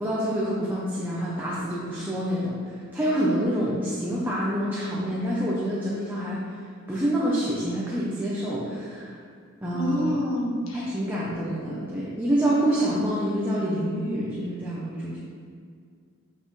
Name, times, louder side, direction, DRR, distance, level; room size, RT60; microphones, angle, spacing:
voice 1, 0.0-6.4 6.9-9.1 9.6-10.2 10.7-15.2, right 1 dB, 10° right, -7 dB, 0.9 m, -27 dB
voice 2, 9.7-10.8, left 1 dB, 70° left, -3 dB, 1.5 m, -27 dB
7.8 x 5.6 x 3.3 m, 2.1 s
head